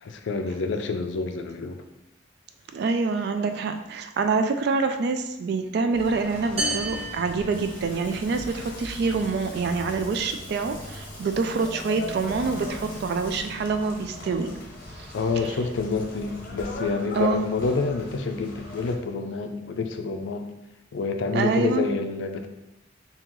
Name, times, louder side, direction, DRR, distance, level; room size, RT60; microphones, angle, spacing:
voice 1, 0.0-1.8 15.1-20.5 20.9-22.5, left 4 dB, 70° left, 7 dB, 0.4 m, -28 dB
voice 2, 2.7-14.5 15.0-15.5 17.1-17.5 21.3-21.9, right 4 dB, 60° right, 7 dB, 0.3 m, -26 dB
sound 1, 5.9-18.9, left 1 dB, 50° left, 0.7 m, -40 dB
sound 2, 6.6-8.3, right 1 dB, 30° right, 0.8 m, -32 dB
Water tap faucet / Sink (filling or washing) / Splash splatter, 7.3-15.9, left 1 dB, 10° left, 1.2 m, -48 dB
3.6 x 2.8 x 3.0 m, 0.94 s
head